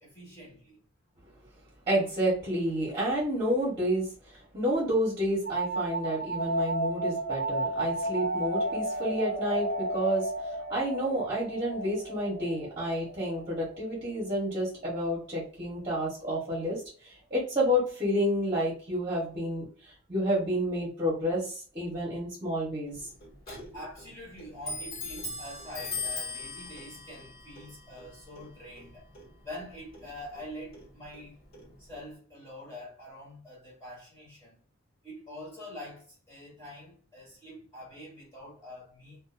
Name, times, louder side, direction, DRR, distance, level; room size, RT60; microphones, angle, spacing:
voice 1, 0.0-0.8 23.7-29.1 29.4-31.4 31.8-34.6 35.0-39.2, left 1 dB, 15° left, 1.1 m, -45 dB
voice 2, 1.9-23.1 23.6-23.7, equal, 25° right, 1.0 m, -30 dB
sound 1, 5.4-14.8, right 1 dB, 90° left, 1.0 m, -33 dB
Clock, 22.9-32.1, left 3 dB, 45° left, 1.3 m, -41 dB
2.6 x 2.3 x 2.5 m
head